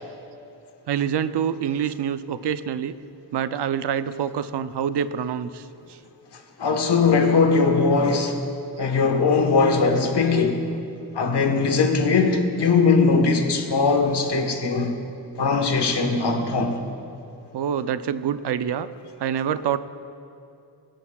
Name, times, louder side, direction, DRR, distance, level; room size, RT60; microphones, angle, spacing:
voice 1, 0.9-2.9 3.3-6.0 10.4-10.5 11.0-11.1 17.5-18.9 19.2-19.8, right 8 dB, 85° right, 0.6 m, -26 dB
voice 2, 6.6-8.4 8.8-10.6 11.1-14.9 15.4-16.8, left 4 dB, 80° left, 1.2 m, -20 dB
24.0 x 10.0 x 2.3 m
wide cardioid pair, 90°, 40 cm